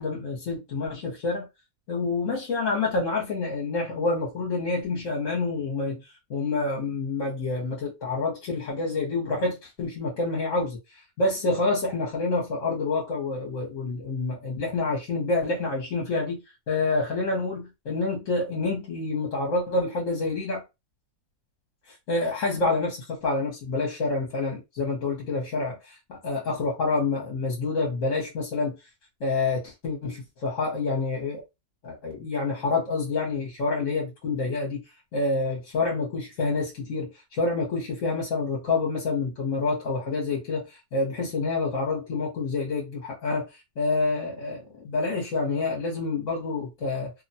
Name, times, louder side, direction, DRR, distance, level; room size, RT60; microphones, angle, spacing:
voice 1, 0.0-1.5 1.9-6.0 6.3-16.4 16.7-20.6 21.9-28.7 29.2-31.4 31.8-34.8 35.1-43.5 43.8-47.1, left 3 dB, 60° left, 1.1 m, -28 dB
2.8 x 2.1 x 2.6 m
omnidirectional pair, 1.7 m